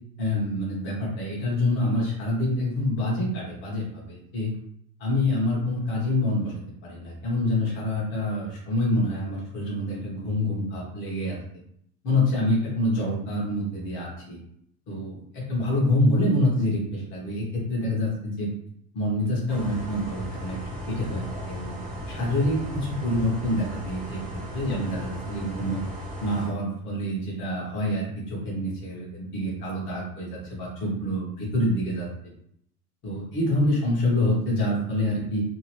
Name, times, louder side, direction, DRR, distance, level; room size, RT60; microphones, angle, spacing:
voice 1, 0.2-4.5 5.0-6.5 6.8-11.4 12.0-14.4 14.9-18.5 18.9-20.6 20.9-21.8 22.1-24.2 24.5-25.8 26.2-32.1 33.0-35.4, left 1 dB, 25° left, -4 dB, 0.8 m, -26 dB
sound 1, 19.5-26.5, equal, ahead, 0.3 m, -36 dB
2.7 x 2.5 x 3.0 m, 0.70 s
supercardioid pair, 170°, 47 cm